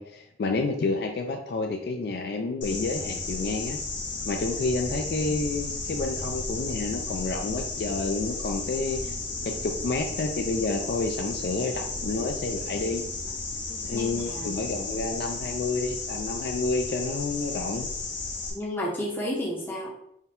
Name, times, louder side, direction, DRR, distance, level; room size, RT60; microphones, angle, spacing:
voice 1, 0.0-3.8 4.2-9.2 9.4-13.0 13.8-17.9, left 3 dB, 60° left, 3 dB, 0.3 m, -29 dB
sound 1, 2.6-18.5, left 3 dB, 85° left, 0.9 m, -34 dB
voice 2, 13.9-14.7 18.5-19.9, left 1 dB, 10° left, -4 dB, 0.6 m, -32 dB
4.5 x 2.2 x 3.6 m, 0.76 s
head